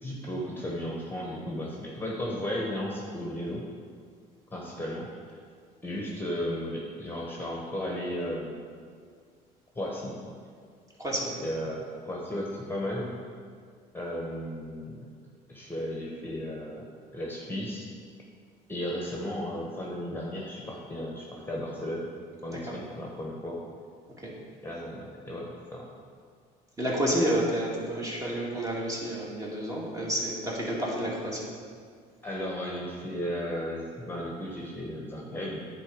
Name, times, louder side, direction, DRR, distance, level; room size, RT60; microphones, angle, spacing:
voice 1, 0.0-3.6 4.5-5.4 5.8-8.6 9.7-10.2 11.4-13.1 13.9-15.1 15.5-16.8 17.1-17.9 18.7-22.1 22.4-23.6 24.6-25.9 32.2-35.6, equal, 10° left, -3 dB, 1.3 m, -35 dB
voice 2, 11.0-11.4 22.7-22.8 24.2-24.3 26.8-31.5, right 1 dB, 20° right, -4 dB, 2.1 m, -30 dB
9.9 x 4.3 x 5.2 m, 2.1 s
cardioid pair, 105°, 17 cm